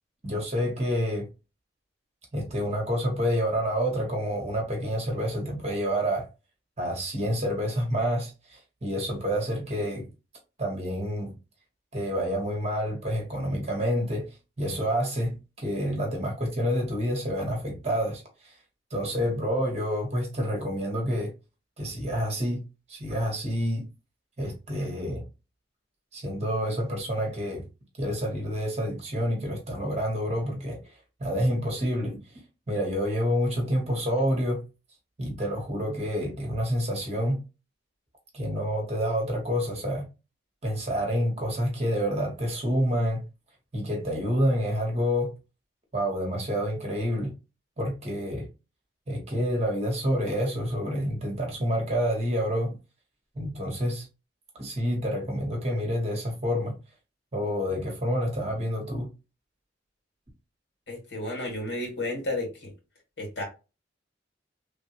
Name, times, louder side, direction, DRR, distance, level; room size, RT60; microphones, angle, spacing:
voice 1, 0.2-1.3 2.3-6.3 6.8-10.1 10.6-11.3 11.9-14.3 14.6-18.5 18.9-21.3 21.8-22.6 22.9-23.8 24.4-25.2 26.1-27.6 28.0-30.8 31.2-32.2 32.7-34.6 35.2-37.4 38.3-40.0 40.6-43.2 43.7-45.3 45.9-47.3 47.8-48.5 49.1-52.7 53.3-54.1 54.6-56.7 57.3-59.1, equal, 35° right, 1.2 m, -28 dB
voice 2, 60.9-62.7 63.2-63.4, left 1 dB, 80° left, 2.0 m, -32 dB
3.2 x 2.5 x 2.9 m
head